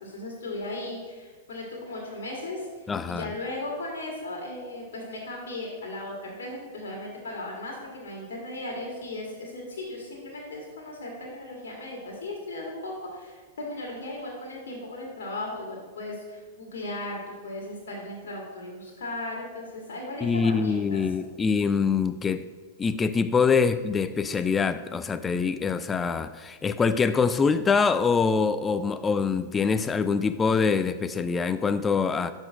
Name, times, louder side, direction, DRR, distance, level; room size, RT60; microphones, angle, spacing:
voice 1, 0.0-21.0, left 2 dB, 80° left, -2 dB, 1.7 m, -37 dB
voice 2, 2.9-3.3 20.2-22.5 22.8-32.3, left 5 dB, 20° left, 11 dB, 0.3 m, -24 dB
6.0 x 5.2 x 6.1 m, 1.4 s
hypercardioid pair, 115°, 0 cm